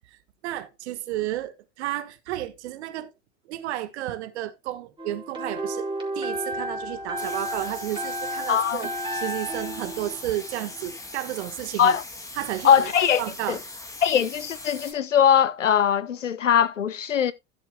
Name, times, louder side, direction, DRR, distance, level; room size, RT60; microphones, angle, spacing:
voice 1, 0.4-3.1 3.5-5.9 6.1-12.0 12.3-12.9 13.2-13.6, right 14 dB, 65° right, 1.5 m, -32 dB
sound 1, 5.0-11.0, equal, 15° right, 4.4 m, -33 dB
sound 2, 7.2-14.9, left 2 dB, 10° left, 2.4 m, -40 dB
voice 2, 8.5-8.9 11.8-12.0 12.6-13.2 13.5-13.6 14.0-17.3, left 8 dB, 80° left, 1.0 m, -21 dB
16.0 x 7.2 x 2.2 m
figure-of-eight pair, 80°, 37 cm